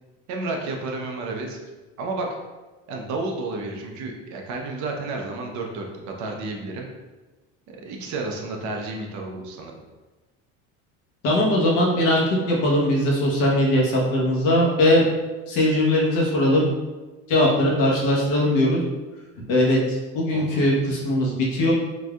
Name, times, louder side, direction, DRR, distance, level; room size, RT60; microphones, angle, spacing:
voice 1, 0.3-1.6 2.0-2.3 2.9-6.9 7.7-9.8 20.3-20.7, right 3 dB, 55° right, 1 dB, 0.7 m, -31 dB
voice 2, 11.2-15.0 15.5-16.7 17.3-18.8 19.5-21.7, left 1 dB, 65° left, -4 dB, 1.2 m, -20 dB
3.9 x 2.7 x 2.3 m, 1.2 s
supercardioid pair, 110°, 34 cm